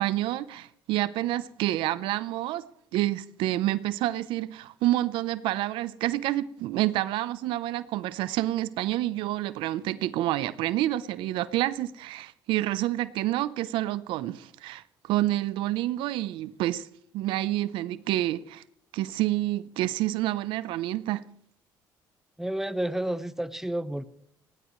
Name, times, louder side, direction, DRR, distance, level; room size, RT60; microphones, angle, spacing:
voice 1, 0.0-2.6 2.9-16.9 17.1-18.6 18.9-21.2, right 15 dB, 80° right, 0.7 m, -28 dB
voice 2, 22.4-24.0, right 1 dB, 5° right, 1.1 m, -30 dB
19.0 x 18.0 x 3.2 m
supercardioid pair, 75°, 9 cm